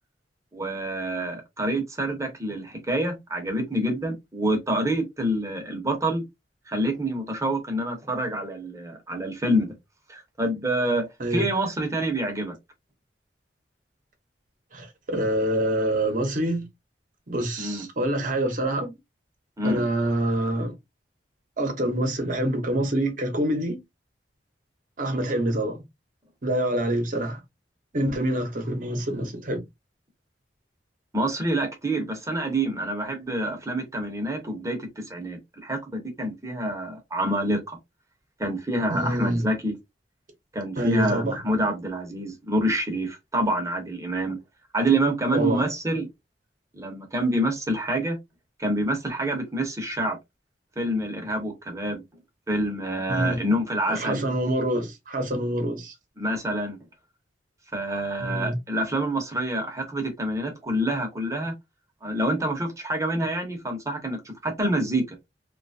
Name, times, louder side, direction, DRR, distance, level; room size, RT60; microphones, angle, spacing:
voice 1, 0.5-6.2 6.7-9.7 10.1-12.5 17.6-17.9 19.6-19.8 31.1-35.8 36.2-37.8 38.4-39.8 40.5-44.4 44.7-46.1 46.7-48.2 48.6-50.2 50.8-52.0 52.5-54.2 56.2-56.8 57.7-61.5 62.0-65.0, right 1 dB, 20° right, 1.0 m, -27 dB
voice 2, 14.7-16.7 17.3-19.0 19.6-20.7 21.6-23.8 25.0-25.8 26.4-27.4 27.9-29.6 38.9-39.5 40.8-41.3 45.3-45.7 53.1-53.4 53.9-55.9 58.2-58.6, right 1 dB, 50° right, 1.0 m, -26 dB
2.9 x 2.4 x 2.6 m
head